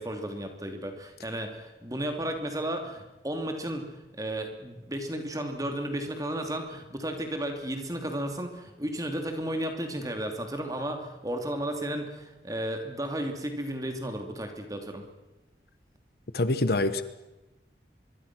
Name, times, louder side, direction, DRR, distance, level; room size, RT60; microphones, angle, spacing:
voice 1, 0.0-15.1, right 1 dB, 20° right, 5 dB, 2.8 m, -33 dB
voice 2, 16.3-17.0, left 2 dB, 60° left, 12 dB, 1.2 m, -25 dB
25.0 x 23.0 x 6.2 m, 1.0 s
head